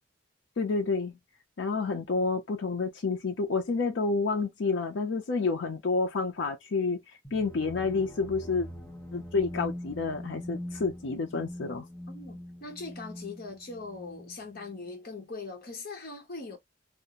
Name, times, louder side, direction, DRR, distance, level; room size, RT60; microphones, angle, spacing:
voice 1, 0.6-1.2 1.6-7.0 7.3-8.7 9.1-11.9, left 4 dB, 70° left, 0.5 m, -29 dB
sound 1, 7.2-14.9, equal, 15° left, 0.7 m, -43 dB
voice 2, 12.1-16.6, left 3 dB, 50° left, 0.9 m, -41 dB
2.4 x 2.1 x 2.8 m
head